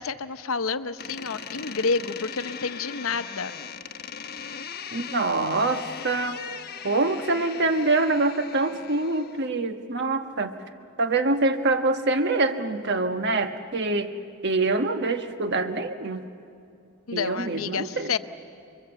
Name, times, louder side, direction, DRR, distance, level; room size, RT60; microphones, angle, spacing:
voice 1, 0.0-3.5 17.1-18.2, left 5 dB, 80° left, 12 dB, 0.8 m, -29 dB
Door, 1.0-9.5, left 6 dB, 50° left, 1.0 m, -39 dB
voice 2, 4.9-6.4 6.8-10.5 11.0-14.1 14.4-16.2 17.1-18.1, right 2 dB, 55° right, 8 dB, 1.3 m, -25 dB
29.5 x 22.5 x 8.1 m, 2.5 s
head